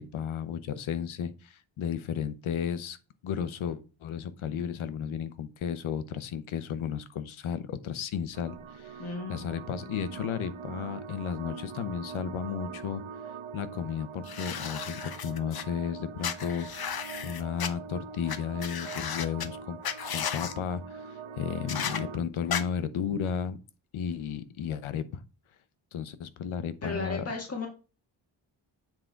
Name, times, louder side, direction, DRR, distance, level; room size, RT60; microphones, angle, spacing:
voice 1, 0.0-3.0 3.2-9.0 9.3-13.0 13.5-16.9 17.2-19.8 20.1-23.6 23.9-25.2 25.9-27.2, left 8 dB, 90° left, 0.9 m, -34 dB
sound 1, 8.3-22.2, right 6 dB, 85° right, 1.0 m, -43 dB
voice 2, 9.0-9.4 26.8-27.7, left 3 dB, 30° left, 1.7 m, -34 dB
sound 2, 14.2-15.6 16.2-17.7 18.3-18.4 18.6-19.5 19.8-20.5 21.7-22.0 22.5-22.6, left 8 dB, 50° left, 0.8 m, -34 dB
7.5 x 3.8 x 4.5 m
cardioid pair, 80°, 47 cm